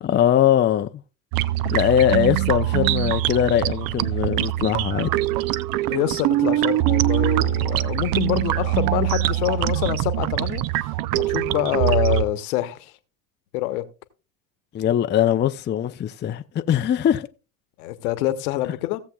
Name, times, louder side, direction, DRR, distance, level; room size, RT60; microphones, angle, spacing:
voice 1, 0.0-0.9 1.7-5.1 14.7-17.3, left 10 dB, 25° left, 0.5 m, -21 dB
sound 1, 1.3-12.3, right 15 dB, 50° right, 0.6 m, -23 dB
voice 2, 5.9-12.9 13.5-13.8 17.8-19.0, left 16 dB, 70° left, 1.1 m, -26 dB
16.5 x 7.3 x 2.3 m
hypercardioid pair, 75°, 45 cm